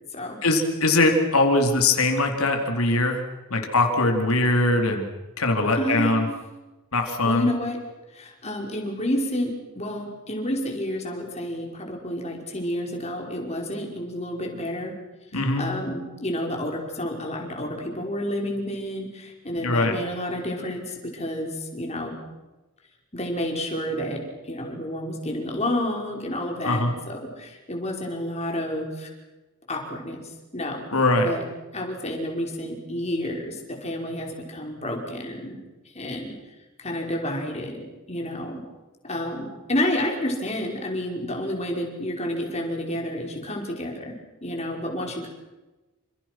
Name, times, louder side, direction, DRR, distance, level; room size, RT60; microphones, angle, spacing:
voice 1, 0.4-3.2 3.5-5.0 5.4-6.2 6.9-7.5 15.3-15.7 19.6-19.9 26.6-26.9 30.9-31.3, left 2 dB, 80° left, 3 dB, 4.1 m, -21 dB
voice 2, 5.8-6.3 7.3-7.8 8.1-14.9 15.3-22.2 23.1-29.1 29.7-30.9 31.2-31.5 31.7-35.6 35.9-36.3 36.8-38.6 39.0-44.2 44.4-45.3, left 1 dB, 30° left, 1 dB, 5.4 m, -30 dB
29.0 x 27.0 x 6.2 m, 1.1 s
head